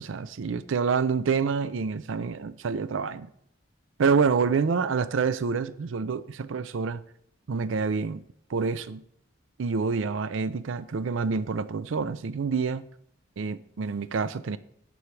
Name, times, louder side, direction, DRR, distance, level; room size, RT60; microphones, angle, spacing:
voice 1, 0.0-3.3 4.0-7.0 7.5-8.2 8.5-9.0 9.6-12.8 13.4-14.6, right 5 dB, 80° right, 15 dB, 0.4 m, -27 dB
16.0 x 5.8 x 3.2 m, 0.72 s
head